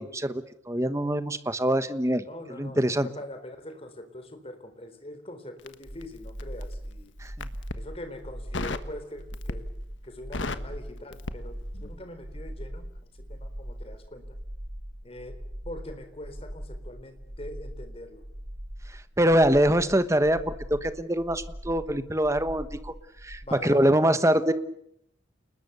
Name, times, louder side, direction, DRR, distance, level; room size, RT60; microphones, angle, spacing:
voice 1, 0.0-2.2 2.5-3.1 7.2-7.5 19.2-22.9 23.2-24.5, right 1 dB, 15° right, 11 dB, 1.2 m, -24 dB
voice 2, 2.3-7.1 7.7-9.7 10.0-12.9 13.1-14.3 15.0-15.4 15.6-18.2 23.4-23.9, left 1 dB, 30° left, 8 dB, 3.9 m, -43 dB
Crackle, 5.6-6.7 7.3-7.9 8.5-8.9 9.3-9.8 10.1-12.0 12.3-12.5, left 3 dB, 80° left, 1.4 m, -35 dB
sound 1, 5.8-23.4, equal, 60° right, 6.0 m, -40 dB
29.5 x 20.5 x 7.0 m, 0.74 s
head